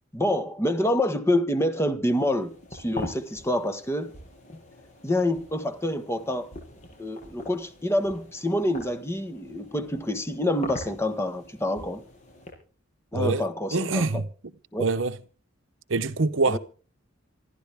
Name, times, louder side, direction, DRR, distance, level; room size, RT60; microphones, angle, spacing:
voice 1, 0.1-4.1 5.0-6.5 7.0-12.0 13.1-14.2 14.7-14.8 16.5-16.6, left 1 dB, 15° left, 1.5 m, -27 dB
sound 1, 2.0-12.5, left 1 dB, 35° left, 6.7 m, -43 dB
voice 2, 13.1-13.4 13.7-14.3 14.8-15.2 15.9-16.6, right 3 dB, 65° right, 0.8 m, -24 dB
27.0 x 11.5 x 3.5 m
head